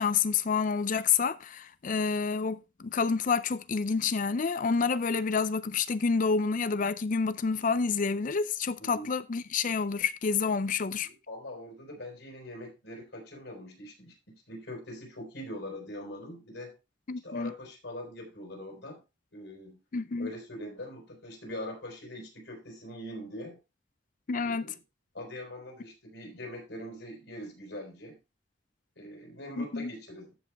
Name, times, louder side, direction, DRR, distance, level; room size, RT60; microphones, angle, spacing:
voice 1, 0.0-11.1 17.1-17.5 19.9-20.3 24.3-24.7 29.6-29.9, left 5 dB, 45° left, 0.5 m, -28 dB
voice 2, 11.0-16.7 17.2-19.0 19.3-19.8 20.2-23.6 24.4-24.7 25.1-28.2 29.0-30.3, left 1 dB, 75° left, 4.7 m, -42 dB
14.0 x 5.4 x 3.4 m
head